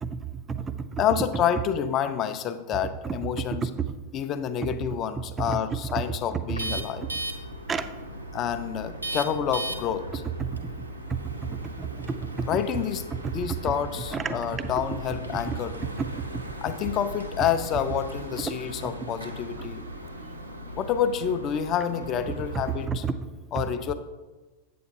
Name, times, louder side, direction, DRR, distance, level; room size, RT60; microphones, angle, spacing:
voice 1, 0.0-1.0 3.0-3.9 4.6-4.8 5.2-5.6 6.3-6.6 7.7-7.9 10.4-12.6 13.1-13.3 14.1-14.7 15.5-15.6 16.0-16.4 18.4-18.5 18.8-18.9 19.6-19.7 22.8-23.6, right 5 dB, 20° right, 10 dB, 0.4 m, -32 dB
voice 2, 1.0-3.7 4.1-7.1 8.3-10.2 12.5-13.0 13.3-15.8 16.6-19.8 20.8-23.0 23.5-23.9, left 8 dB, 35° left, 10 dB, 0.5 m, -28 dB
sound 1, 6.5-22.9, right 1 dB, 85° right, 0.8 m, -38 dB
8.4 x 8.3 x 2.8 m, 1.2 s
figure-of-eight pair, 90°, 0 cm